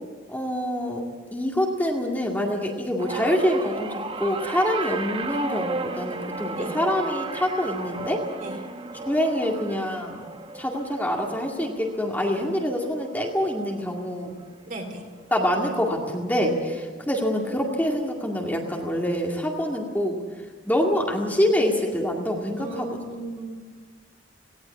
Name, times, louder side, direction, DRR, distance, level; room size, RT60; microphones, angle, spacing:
voice 1, 0.3-1.0 1.3-8.2 9.1-10.2 10.5-14.3 15.3-20.2 20.7-22.9, equal, 10° left, 0 dB, 2.1 m, -25 dB
sound 1, 3.0-13.4 13.8-14.2 15.3-15.4, right 3 dB, 30° right, 1.0 m, -34 dB
voice 2, 14.6-15.0 22.6-23.5, right 2 dB, 45° right, 2 dB, 3.6 m, -35 dB
18.5 x 17.5 x 8.4 m, 1.5 s
head